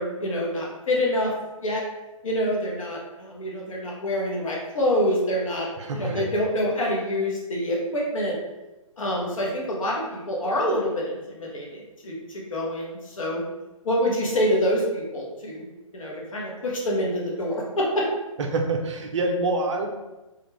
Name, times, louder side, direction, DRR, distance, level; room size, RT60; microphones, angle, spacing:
voice 1, 0.0-1.3 1.6-1.8 2.2-5.7 5.9-8.4 9.0-13.4 13.8-15.7 15.9-18.1, equal, 70° left, -3 dB, 1.0 m, -26 dB
voice 2, 5.8-6.3 18.5-19.9, right 2 dB, 60° right, 2 dB, 0.6 m, -26 dB
2.4 x 2.3 x 3.2 m, 1.1 s
figure-of-eight pair, 135°, 18 cm